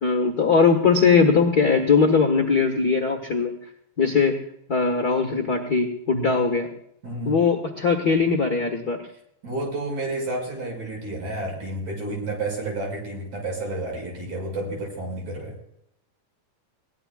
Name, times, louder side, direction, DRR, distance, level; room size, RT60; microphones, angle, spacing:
voice 1, 0.0-3.5 4.0-4.4 4.7-6.7 7.2-9.0, left 5 dB, 45° left, 3 dB, 1.3 m, -20 dB
voice 2, 7.0-7.4 9.4-15.5, right 2 dB, 60° right, 0 dB, 7.3 m, -30 dB
22.0 x 18.0 x 2.4 m, 0.73 s
omnidirectional pair, 3.6 m